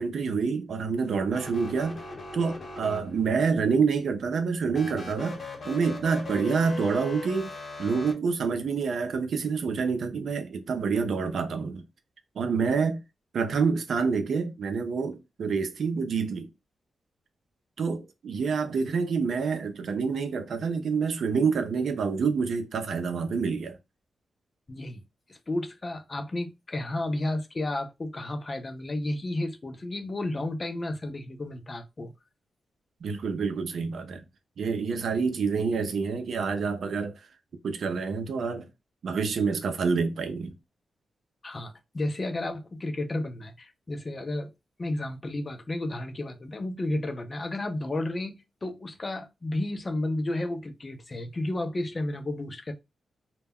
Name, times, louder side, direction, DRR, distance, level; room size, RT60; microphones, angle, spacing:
voice 1, 0.0-2.0 2.3-7.5 7.8-11.8 12.4-13.0 13.3-16.5 17.8-23.8 33.0-34.2 34.6-37.1 37.6-38.7 39.0-40.5, right 5 dB, 70° right, 0.5 m, -27 dB
sound 1, 1.3-3.4 4.7-8.1, left 3 dB, 50° left, 0.9 m, -39 dB
voice 2, 24.7-25.0 25.3-32.1 41.4-44.5 44.8-52.7, left 1 dB, 35° left, 0.5 m, -32 dB
2.2 x 2.1 x 3.5 m
cardioid pair, 75°, 0 cm